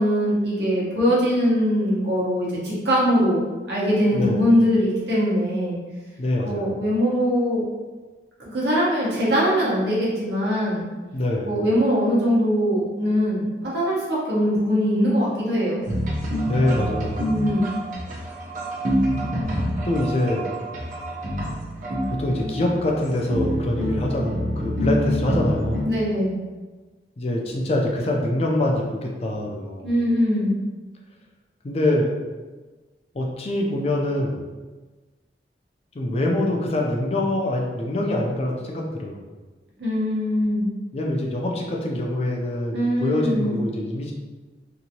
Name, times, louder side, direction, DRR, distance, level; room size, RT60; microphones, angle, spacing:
voice 1, 0.0-5.8 6.4-7.6 8.5-10.9 11.5-15.9 17.3-17.7 25.9-26.4 29.8-30.5 39.8-40.7 42.7-43.5, equal, 75° right, -6 dB, 1.0 m, -22 dB
voice 2, 6.2-6.8 11.1-11.6 16.4-17.4 19.8-20.6 22.1-25.9 27.2-29.9 31.6-32.1 33.1-34.5 35.9-39.2 40.9-44.1, left 1 dB, 35° left, 0 dB, 0.4 m, -24 dB
sound 1, 15.8-25.8, equal, 45° right, 0.6 m, -26 dB
2.8 x 2.6 x 2.8 m, 1.3 s
head